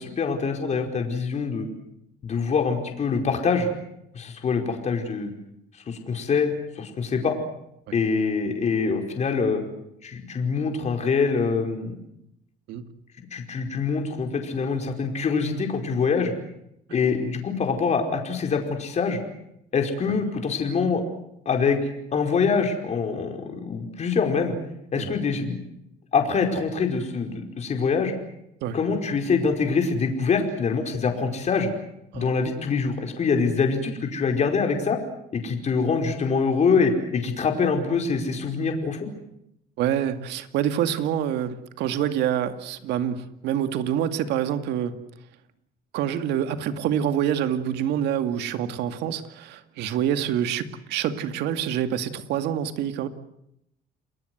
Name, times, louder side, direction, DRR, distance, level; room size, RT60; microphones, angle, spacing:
voice 1, 0.0-1.7 2.2-3.7 4.1-5.3 5.9-7.4 7.9-9.6 10.0-12.0 13.3-16.3 16.9-19.2 19.7-21.0 21.4-24.5 24.9-25.6 26.1-28.1 28.7-31.7 32.1-35.0 35.3-39.1, left 5 dB, 40° left, 4 dB, 5.0 m, -24 dB
voice 2, 39.8-44.9 45.9-53.1, right 10 dB, 85° right, 9 dB, 2.3 m, -26 dB
30.0 x 21.0 x 8.0 m, 0.79 s
cardioid pair, 110°, 17 cm